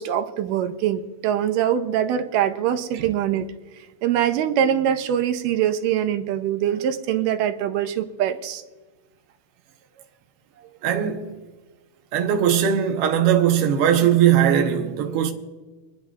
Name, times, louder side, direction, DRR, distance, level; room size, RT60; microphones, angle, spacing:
voice 1, 0.0-3.5 4.0-8.6 10.6-10.7, right 10 dB, 90° right, 2.3 m, -23 dB
voice 2, 10.8-11.3 12.1-15.3, right 9 dB, 70° right, 1.4 m, -19 dB
27.5 x 10.5 x 2.4 m
omnidirectional pair, 3.8 m